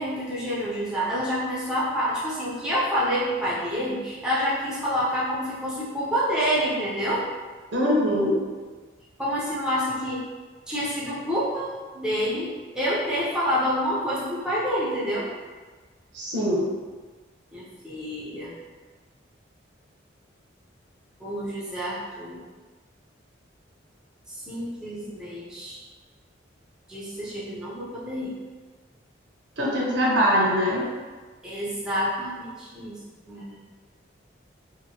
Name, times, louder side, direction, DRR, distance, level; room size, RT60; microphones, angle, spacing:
voice 1, 0.0-7.3 9.2-10.2 10.7-15.3 17.5-18.5 21.2-22.4 24.3-25.8 26.9-28.3 31.4-33.0 33.3-33.6, equal, 5° right, -9 dB, 0.6 m, -28 dB
voice 2, 7.7-8.4 16.1-16.7 29.6-30.8, equal, 75° right, -5 dB, 0.8 m, -22 dB
2.9 x 2.6 x 2.8 m, 1.4 s
head